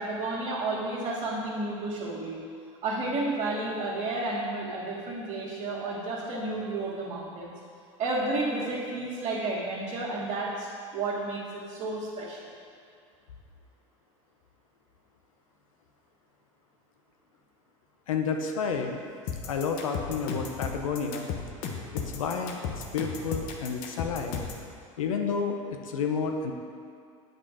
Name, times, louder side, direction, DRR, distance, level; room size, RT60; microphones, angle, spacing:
voice 1, 0.0-2.5 2.8-7.5 8.0-10.7 10.9-12.5, right 2 dB, 40° right, -7 dB, 1.4 m, -31 dB
voice 2, 18.1-19.0 19.4-21.3 21.9-22.6 22.9-24.4 25.0-26.5, left 5 dB, 85° left, 4 dB, 0.7 m, -30 dB
sound 1, 19.3-24.6, left 6 dB, 55° left, 0.9 m, -34 dB
8.0 x 3.6 x 4.8 m, 2.3 s
hypercardioid pair, 95°, 17 cm